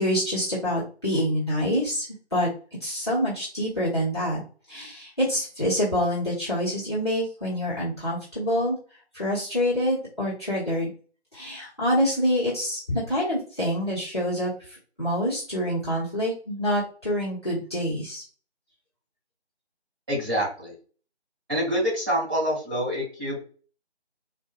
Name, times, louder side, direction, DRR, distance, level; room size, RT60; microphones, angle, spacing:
voice 1, 0.0-2.5 2.8-4.4 4.7-8.8 9.1-10.9 11.3-18.2, equal, 25° left, -10 dB, 1.1 m, -26 dB
voice 2, 20.1-20.7 21.5-23.4, equal, 20° right, -11 dB, 1.7 m, -26 dB
3.7 x 2.6 x 2.3 m, 0.39 s
figure-of-eight pair, 170°, 34 cm